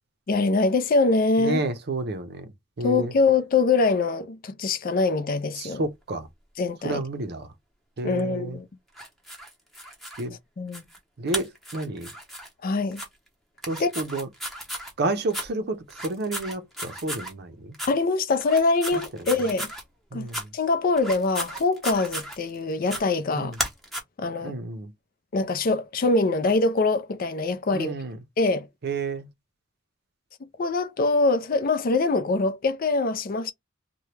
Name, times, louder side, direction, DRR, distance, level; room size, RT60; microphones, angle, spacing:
voice 1, 0.3-1.6 2.8-5.8 6.6-7.0 8.0-8.7 10.6-10.8 12.6-13.0 13.8-13.9 17.9-19.7 20.1-20.3 20.5-23.5 24.2-24.5 25.3-27.9 28.4-28.7 30.6-33.5, left 3 dB, 45° left, 0.4 m, -23 dB
voice 2, 1.4-2.5 2.8-3.1 5.6-6.3 6.8-7.5 8.0-8.6 10.2-10.4 11.2-12.1 13.7-14.3 15.0-17.7 18.9-19.3 20.1-20.5 23.3-23.6 24.4-24.9 27.7-28.2 28.8-29.3, right 2 dB, 55° right, 0.6 m, -30 dB
sound 1, 8.9-10.2 10.7-11.0 11.3-12.5 12.9-13.1 13.6-14.9 15.3-15.5 15.9-17.3 17.7-17.9 18.4-19.8 20.3-20.4 21.0-22.5 22.9-23.0 23.5-24.0, equal, ahead, 0.8 m, -34 dB
2.9 x 2.2 x 3.2 m
head